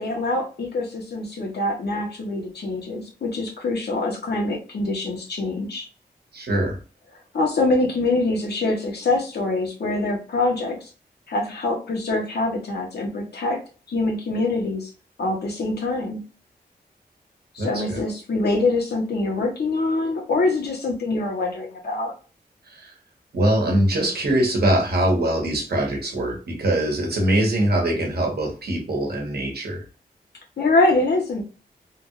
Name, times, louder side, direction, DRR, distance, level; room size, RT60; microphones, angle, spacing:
voice 1, 0.0-5.9 7.3-10.9 11.3-13.6 13.9-14.9 15.2-16.2 17.5-22.1 30.6-31.4, left 2 dB, 85° left, 0 dB, 1.2 m, -24 dB
voice 2, 6.3-6.8 17.6-18.0 22.7-22.9 23.3-29.8, right 1 dB, 75° right, 1 dB, 1.3 m, -22 dB
3.5 x 2.4 x 3.1 m, 0.34 s
wide cardioid pair, 140°, 17 cm